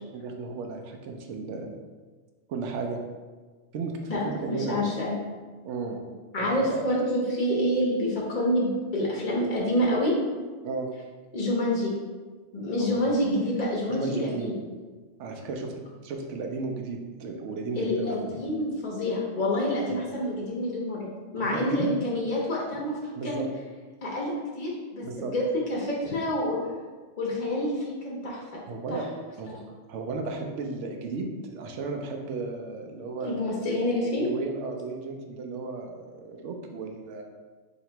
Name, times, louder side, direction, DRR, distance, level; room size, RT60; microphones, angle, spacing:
voice 1, 0.1-1.7 2.5-3.0 3.7-4.9 5.6-6.0 6.4-6.8 10.6-10.9 12.8-13.3 13.9-14.6 15.2-18.2 19.9-20.0 21.4-21.9 23.2-23.5 25.0-25.3 28.7-29.0 29.4-29.6 29.9-33.4 34.2-37.2, right 3 dB, 75° right, 3 dB, 0.9 m, -34 dB
voice 2, 4.5-5.1 6.3-10.1 11.3-11.9 12.5-14.6 17.8-23.4 24.0-26.6 27.2-28.6 28.9-29.0 29.5-29.6 33.2-34.3, left 1 dB, 45° left, -4 dB, 0.7 m, -27 dB
2.9 x 2.8 x 4.4 m, 1.4 s
omnidirectional pair, 1.3 m